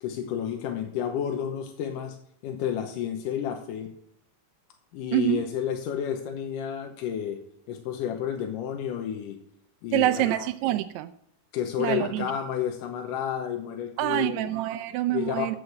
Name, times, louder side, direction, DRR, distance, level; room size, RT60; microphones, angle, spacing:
voice 1, 0.0-2.2 2.4-3.9 4.9-7.4 7.7-9.4 9.8-10.4 11.5-14.5 15.1-15.6, left 9 dB, 90° left, 2.6 m, -31 dB
voice 2, 5.1-5.4 9.9-11.1 11.8-12.3 14.0-15.6, right 15 dB, 80° right, 1.7 m, -26 dB
14.0 x 4.9 x 7.8 m
omnidirectional pair, 3.6 m